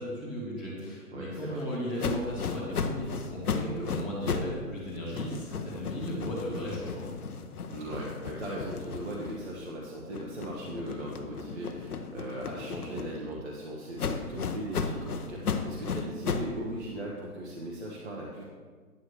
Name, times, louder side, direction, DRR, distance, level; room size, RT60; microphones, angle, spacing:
voice 1, 0.0-7.0, equal, 5° right, -9 dB, 0.9 m, -36 dB
voice 2, 1.1-1.6 7.7-18.4, right 1 dB, 45° right, -4 dB, 1.2 m, -38 dB
sound 1, 2.0-4.6 4.9-9.7 10.1-13.4 14.0-16.6, left 5 dB, 70° left, 0.9 m, -35 dB
9.8 x 8.2 x 3.2 m, 1.5 s
hypercardioid pair, 165°, 46 cm